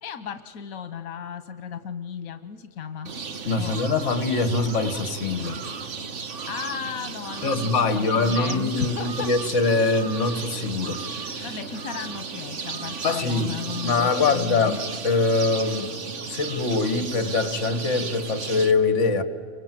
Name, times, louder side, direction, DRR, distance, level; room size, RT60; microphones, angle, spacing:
voice 1, 0.0-3.1 3.6-3.8 6.4-9.3 11.4-14.8, left 8 dB, 85° left, 10 dB, 1.3 m, -35 dB
sound 1, 3.1-18.7, right 5 dB, 60° right, 1.6 m, -34 dB
voice 2, 3.5-5.6 7.4-11.1 11.3-11.5 13.0-13.6 13.8-16.0 16.3-19.2, left 3 dB, 60° left, 11 dB, 1.9 m, -23 dB
29.5 x 24.0 x 7.6 m, 2.4 s
omnidirectional pair, 1.4 m